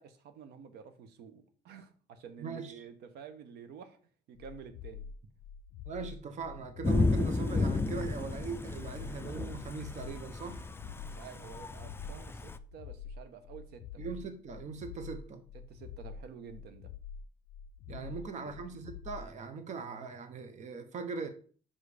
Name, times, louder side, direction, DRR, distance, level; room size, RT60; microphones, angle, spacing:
voice 1, 0.0-4.0 4.3-5.1 11.0-14.1 15.7-16.9 18.0-18.6, right 7 dB, 75° right, 1.0 m, -50 dB
voice 2, 2.4-2.8 5.8-10.7 14.0-15.4 17.9-21.3, right 5 dB, 45° right, 0.9 m, -40 dB
sound 1, 4.4-19.3, left 6 dB, 85° left, 0.4 m, -47 dB
Thunder / Rain, 6.8-12.6, left 3 dB, 15° left, 0.4 m, -33 dB
5.6 x 5.3 x 4.9 m
cardioid pair, 110°, 17 cm